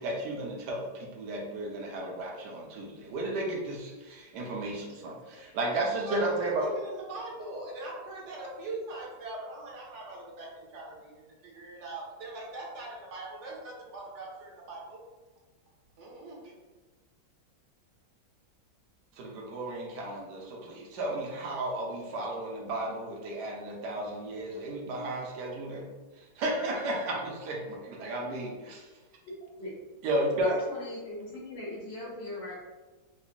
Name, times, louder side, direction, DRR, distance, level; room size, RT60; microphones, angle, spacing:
voice 1, 0.0-6.7 19.2-25.9 26.4-28.9 30.0-30.5, right 1 dB, 70° right, -1 dB, 1.3 m, -33 dB
voice 2, 6.1-15.0 16.0-16.5, right 2 dB, 50° right, -3 dB, 0.9 m, -41 dB
voice 3, 30.4-32.5, left 1 dB, 70° left, -7 dB, 1.5 m, -39 dB
3.9 x 2.6 x 2.5 m, 1.2 s
omnidirectional pair, 2.0 m